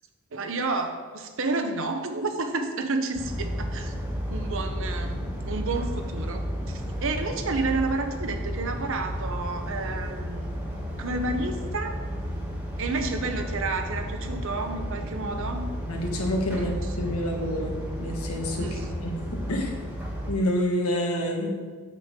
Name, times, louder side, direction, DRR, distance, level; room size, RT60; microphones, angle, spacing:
voice 1, 0.3-3.9 4.3-10.5 11.0-11.9 12.8-15.7 16.5-16.7 18.6-18.9, right 3 dB, 65° right, 6 dB, 0.8 m, -30 dB
sound 1, 3.1-20.3, equal, 10° right, 1.3 m, -32 dB
voice 2, 15.9-19.8 20.3-21.5, equal, 80° left, 1 dB, 1.4 m, -28 dB
8.3 x 7.1 x 3.7 m, 1.5 s
head